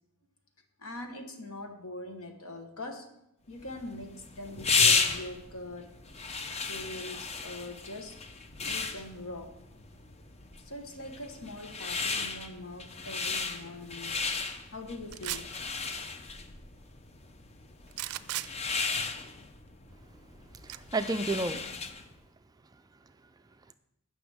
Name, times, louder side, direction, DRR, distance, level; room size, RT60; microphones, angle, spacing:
voice 1, 0.8-3.1 3.5-5.9 6.7-8.2 8.6-9.6 10.6-15.5, left 2 dB, 80° left, 5 dB, 1.3 m, -42 dB
sound 1, 3.6-22.1, left 4 dB, 30° left, 0.6 m, -34 dB
sound 2, 15.1-15.6 17.9-18.5 20.7-20.8, right 15 dB, 85° right, 0.4 m, -35 dB
voice 2, 19.9-21.7 22.6-23.7, right 2 dB, 15° right, 10 dB, 0.4 m, -35 dB
15.5 x 6.1 x 3.6 m, 0.84 s
head